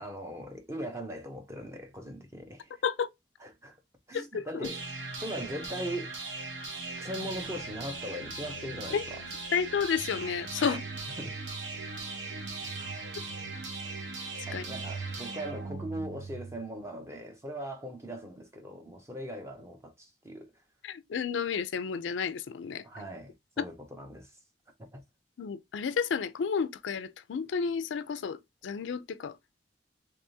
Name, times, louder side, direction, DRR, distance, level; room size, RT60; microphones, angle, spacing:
voice 1, 0.0-2.8 3.4-3.8 4.1-4.8 5.2-6.1 7.0-9.2 10.6-10.8 11.2-11.4 14.5-20.5 22.8-24.3 24.8-25.0, equal, 15° right, 0.7 m, -40 dB
voice 2, 4.1-4.7 8.9-9.0 9.5-10.8 14.5-14.6 20.8-22.8 23.6-23.7 25.4-29.4, left 6 dB, 85° left, 0.4 m, -31 dB
sound 1, 4.6-16.6, right 3 dB, 75° right, 1.0 m, -39 dB
3.4 x 3.4 x 2.6 m
head